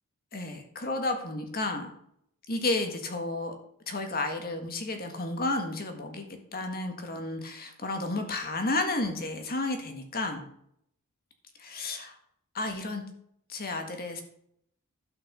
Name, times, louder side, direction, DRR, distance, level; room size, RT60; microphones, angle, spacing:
voice 1, 0.3-1.9 2.5-3.6 3.9-6.3 6.5-10.4 11.6-12.2 12.5-13.0 13.5-14.2, left 2 dB, 45° left, 5 dB, 1.7 m, -32 dB
12.0 x 5.8 x 6.8 m, 0.70 s
head